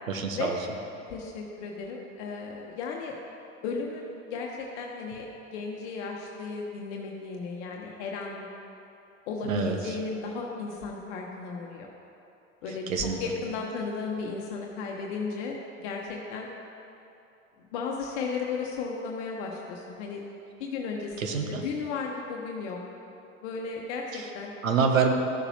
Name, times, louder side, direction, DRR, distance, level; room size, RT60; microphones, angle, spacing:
voice 1, 0.1-0.6 9.4-10.0 12.7-13.2 21.2-21.6 24.1-24.3 24.6-25.1, right 5 dB, 85° right, 3 dB, 1.0 m, -27 dB
voice 2, 1.1-3.1 3.6-8.4 9.3-11.9 12.6-12.9 13.2-16.5 17.7-20.2 20.6-21.3 21.6-22.8 23.4-24.5, left 4 dB, 60° left, 0 dB, 1.1 m, -35 dB
14.0 x 6.9 x 2.9 m, 2.8 s
hypercardioid pair, 85°, 39 cm